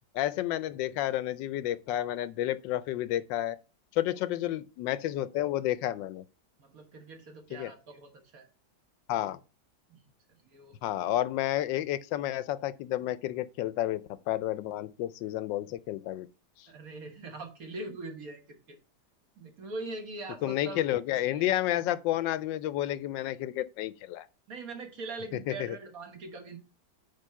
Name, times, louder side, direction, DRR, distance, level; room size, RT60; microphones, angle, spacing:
voice 1, 0.1-3.6 3.9-6.2 7.5-7.7 9.1-9.4 10.8-16.3 16.6-16.7 20.4-24.3 25.3-25.5, left 13 dB, 80° left, 1.3 m, -31 dB
voice 2, 6.6-8.5 9.9-10.0 10.4-10.8 16.7-18.8 19.4-20.9 21.1-21.5 24.5-26.6, right 2 dB, 50° right, 1.7 m, -42 dB
8.9 x 3.4 x 5.6 m
omnidirectional pair, 2.0 m